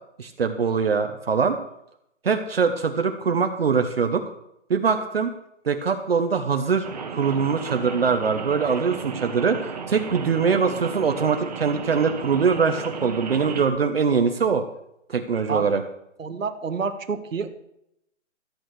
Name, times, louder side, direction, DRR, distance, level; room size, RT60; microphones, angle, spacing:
voice 1, 0.2-1.6 2.2-4.2 4.7-5.3 5.6-14.6 15.1-15.8, right 5 dB, 50° right, 6 dB, 1.0 m, -23 dB
Rain, 6.8-13.7, right 5 dB, 30° right, 1.3 m, -34 dB
voice 2, 16.2-17.5, right 5 dB, 90° right, 8 dB, 1.6 m, -28 dB
14.5 x 8.7 x 6.1 m, 0.78 s
hypercardioid pair, 175°, 38 cm